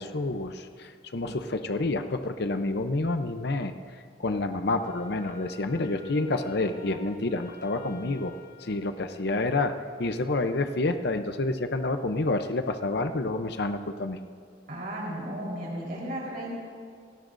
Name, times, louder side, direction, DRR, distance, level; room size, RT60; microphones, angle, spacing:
voice 1, 0.0-3.7 4.2-9.7 10.0-14.2, left 2 dB, 60° left, 8 dB, 0.7 m, -29 dB
Wind instrument woodwind instrument, 4.7-9.3, left 4 dB, 40° left, 3.2 m, -47 dB
voice 2, 14.7-16.5, right 1 dB, 50° right, -5 dB, 4.2 m, -34 dB
28.5 x 17.0 x 2.6 m, 2.1 s
head